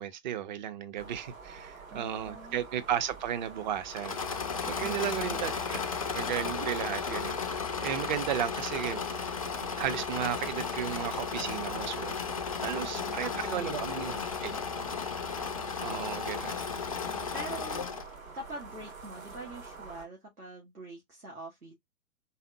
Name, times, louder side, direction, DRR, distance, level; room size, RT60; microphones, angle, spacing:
voice 1, 0.0-4.2 4.6-5.8 6.1-7.4 7.8-9.0 9.8-12.3 12.6-14.1 14.4-14.6 15.8-16.6, right 10 dB, 35° right, 0.6 m, -34 dB
sound 1, 1.0-20.1, right 4 dB, 65° right, 2.2 m, -47 dB
voice 2, 1.9-2.6 4.8-5.4 12.5-14.4 17.0-17.8 18.3-21.7, right 2 dB, 85° right, 2.2 m, -44 dB
Engine / Mechanisms, 3.9-18.1, left 6 dB, 25° left, 0.3 m, -34 dB
4.1 x 3.7 x 2.6 m
figure-of-eight pair, 115°, 43 cm